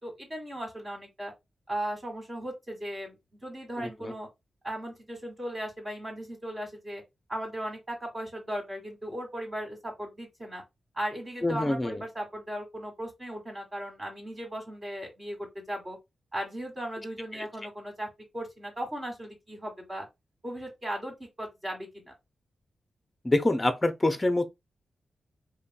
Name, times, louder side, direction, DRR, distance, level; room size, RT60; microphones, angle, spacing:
voice 1, 0.0-1.3 1.7-3.2 3.4-4.3 4.6-7.0 7.3-10.6 10.9-16.0 16.3-18.1 18.3-20.1 20.4-22.1, right 1 dB, 30° right, 1.5 m, -37 dB
voice 2, 3.8-4.1 11.4-12.0 17.3-17.5 23.2-24.5, left 2 dB, 20° left, 0.6 m, -26 dB
3.1 x 2.5 x 2.2 m
cardioid pair, 65°, 0 cm